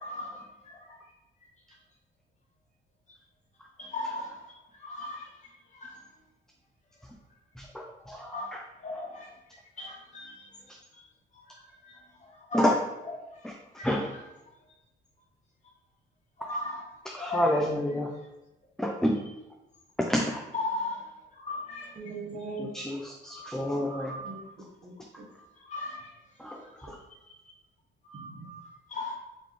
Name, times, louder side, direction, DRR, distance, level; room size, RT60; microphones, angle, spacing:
voice 1, 0.0-1.0 3.8-6.0 8.1-8.5 8.8-9.3 9.8-10.5 10.9-11.0 11.5-12.7 13.0-13.4 13.8-14.2 16.4-16.8 17.1-17.6 20.5-21.9 23.4-23.5 23.8-24.4 25.5-26.1 26.8-26.9 28.0-29.1, left 2 dB, 35° left, -2 dB, 1.3 m, -38 dB
voice 2, 8.1-8.6 12.5-12.8 13.8-14.0 17.1-18.1 18.8-19.2 20.0-20.4 22.6-24.1 26.4-26.6, left 1 dB, 5° left, 0 dB, 0.4 m, -28 dB
voice 3, 22.0-22.7 24.2-25.3 28.1-28.5, right 3 dB, 45° right, 1 dB, 1.0 m, -41 dB
4.0 x 3.0 x 3.4 m, 0.97 s
cardioid pair, 90°, 20 cm